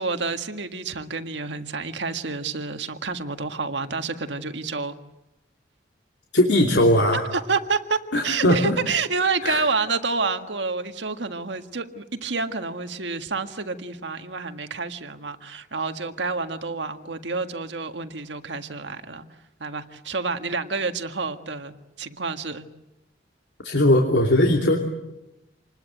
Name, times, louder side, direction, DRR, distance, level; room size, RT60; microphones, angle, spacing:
voice 1, 0.0-4.9 7.1-19.3 19.6-22.7, right 4 dB, 75° right, 7 dB, 1.7 m, -29 dB
voice 2, 6.3-7.2 8.1-8.7 9.4-9.6 23.6-24.8, left 1 dB, 75° left, 1 dB, 3.0 m, -19 dB
27.5 x 20.5 x 9.1 m, 0.96 s
head